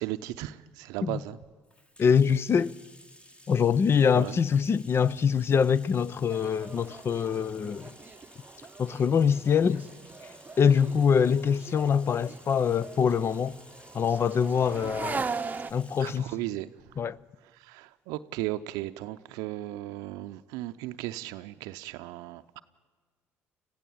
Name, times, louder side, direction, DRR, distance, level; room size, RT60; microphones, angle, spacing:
voice 1, 0.0-1.4 4.1-4.4 16.0-17.1 17.4-22.6, right 16 dB, 75° right, 0.6 m, -36 dB
Bathtub (filling or washing), 1.6-16.3, left 1 dB, 15° left, 1.8 m, -55 dB
voice 2, 2.0-2.7 3.5-7.9 8.8-9.8 10.6-13.6 13.9-15.2 15.7-16.2 17.0-17.2, left 7 dB, 40° left, 0.6 m, -24 dB
sound 1, 6.3-15.7, right 4 dB, 25° right, 0.8 m, -40 dB
21.0 x 14.5 x 8.6 m
hypercardioid pair, 60°, 6 cm